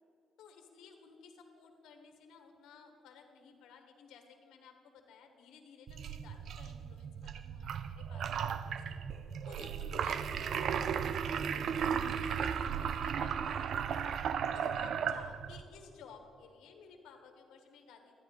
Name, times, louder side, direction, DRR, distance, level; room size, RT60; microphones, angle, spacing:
voice 1, 0.4-9.0 9.4-13.8 14.5-18.1, left 5 dB, 85° left, 4 dB, 1.4 m, -55 dB
sound 1, 5.9-15.6, right 7 dB, 65° right, 0.4 m, -35 dB
13.0 x 10.0 x 4.2 m, 2.5 s
cardioid pair, 90°, 0 cm